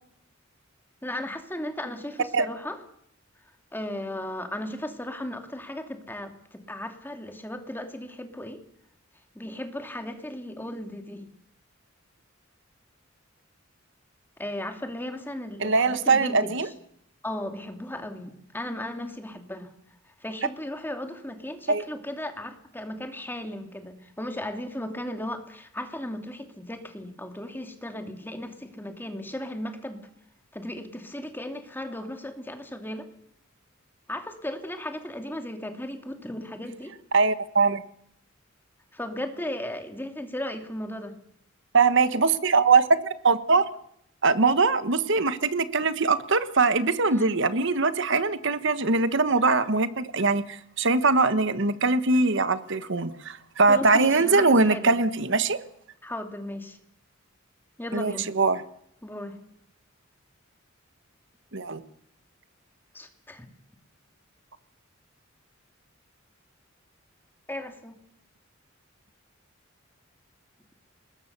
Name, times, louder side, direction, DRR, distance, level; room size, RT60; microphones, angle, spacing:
voice 1, 1.0-2.8 3.7-8.6 9.3-11.3 14.4-16.7 17.2-19.7 20.2-30.0 30.5-33.1 34.1-37.0 38.9-41.2 47.1-47.3 53.7-55.0 56.0-56.8 57.8-58.3 59.0-59.4 62.9-63.5 67.5-68.0, left 1 dB, 10° left, 5 dB, 2.5 m, -36 dB
voice 2, 15.6-16.7 21.7-21.8 37.1-37.8 41.7-43.0 43.2-43.6 44.2-55.6 57.9-58.6 61.5-61.8, right 4 dB, 65° right, 12 dB, 1.4 m, -22 dB
25.0 x 21.0 x 6.8 m, 0.73 s
head